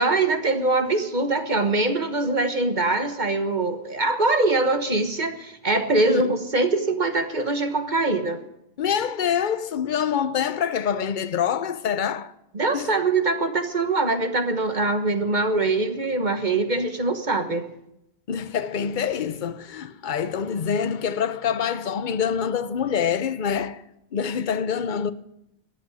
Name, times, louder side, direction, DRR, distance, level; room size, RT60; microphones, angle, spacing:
voice 1, 0.0-8.4 12.5-17.7, right 2 dB, 45° right, 1.4 m, -23 dB
voice 2, 6.1-6.4 8.8-12.3 12.7-13.0 18.3-23.8 24.1-25.1, left 7 dB, 50° left, 0.9 m, -26 dB
14.0 x 8.7 x 9.9 m
omnidirectional pair, 1.2 m